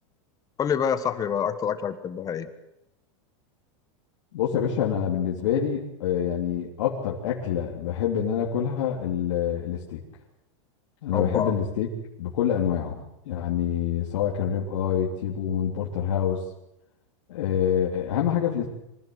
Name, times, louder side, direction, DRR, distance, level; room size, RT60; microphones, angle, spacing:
voice 1, 0.6-2.5 11.1-11.6, left 7 dB, 20° left, 11 dB, 1.3 m, -27 dB
voice 2, 4.3-10.0 11.0-11.9 12.2-16.4 17.3-18.7, left 9 dB, 75° left, -3 dB, 3.5 m, -26 dB
25.0 x 16.0 x 8.0 m, 0.84 s
supercardioid pair, 145°, 16 cm